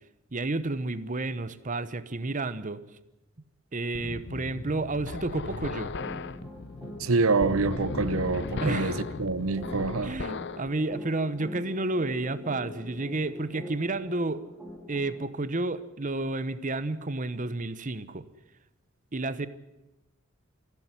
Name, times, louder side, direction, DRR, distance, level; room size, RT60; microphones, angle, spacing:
voice 1, 0.3-2.8 3.7-5.9 8.6-9.0 10.0-14.4 14.9-18.2 19.1-19.5, right 2 dB, 40° right, 1.0 m, -31 dB
sound 1, 3.9-10.7, left 3 dB, 55° left, 0.8 m, -36 dB
sound 2, 6.0-15.3, left 1 dB, 5° right, 3.9 m, -44 dB
voice 2, 7.0-10.1, right 3 dB, 85° right, 0.8 m, -26 dB
28.0 x 12.0 x 9.8 m
head